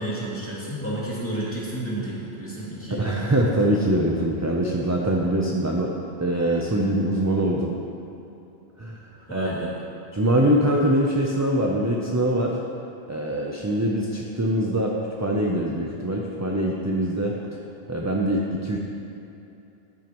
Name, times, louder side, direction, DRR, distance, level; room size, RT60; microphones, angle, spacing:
voice 1, 0.0-3.0 9.2-9.7, right 1 dB, 10° left, -8 dB, 2.5 m, -31 dB
voice 2, 2.9-7.8 8.8-9.5 10.1-12.6 13.1-17.4 17.9-18.8, right 1 dB, 20° right, -1 dB, 0.6 m, -23 dB
13.5 x 9.3 x 3.0 m, 2.9 s
omnidirectional pair, 1.1 m